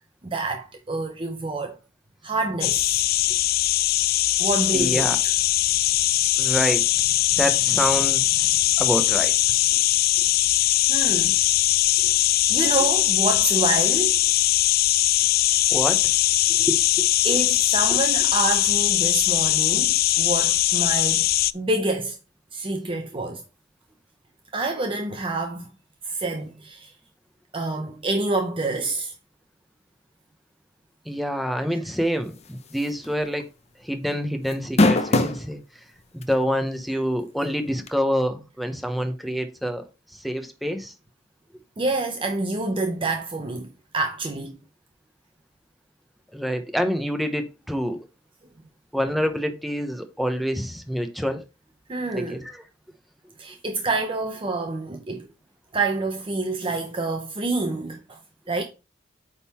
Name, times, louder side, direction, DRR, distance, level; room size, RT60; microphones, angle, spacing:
voice 1, 0.2-1.8 2.2-3.0 4.4-5.1 9.7-9.8 10.9-11.4 12.0-14.1 16.5-16.7 17.2-21.3 21.5-22.2 22.5-23.4 24.5-25.7 26.0-26.9 27.5-29.1 41.8-43.7 43.9-44.6 51.9-52.4 53.4-55.3 55.7-58.2 58.5-58.6, right 3 dB, 30° right, 0.7 m, -27 dB
sound 1, 2.6-21.5, left 15 dB, 55° left, 0.3 m, -21 dB
voice 2, 4.7-5.2 6.4-6.8 7.4-9.3 15.7-16.0 16.6-17.4 17.9-18.0 31.1-33.4 33.8-35.6 36.1-39.9 40.2-40.9 46.3-48.0 48.9-51.4 52.1-52.4, equal, ahead, 0.9 m, -27 dB
sound 2, 32.8-33.0 33.4-33.5 34.5-35.4 36.2-36.3 37.9-38.0, left 2 dB, 35° left, 0.7 m, -19 dB
8.8 x 3.7 x 4.3 m
head